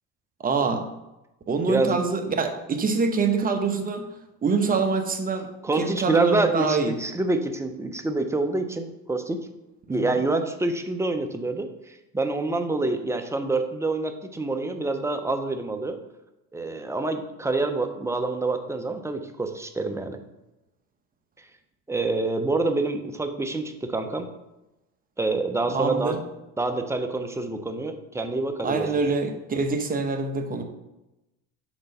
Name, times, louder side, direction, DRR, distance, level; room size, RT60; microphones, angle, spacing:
voice 1, 0.4-0.8 1.5-4.0 4.4-5.5 5.8-7.0 9.9-10.1 25.7-26.2 28.6-30.6, right 4 dB, 25° right, 5 dB, 0.9 m, -25 dB
voice 2, 1.7-2.0 5.6-9.4 9.9-16.0 16.5-20.2 21.9-24.3 25.2-26.2 26.6-28.9, right 2 dB, 10° right, 6 dB, 0.6 m, -27 dB
6.1 x 3.9 x 5.5 m, 0.96 s
supercardioid pair, 105°, 35 cm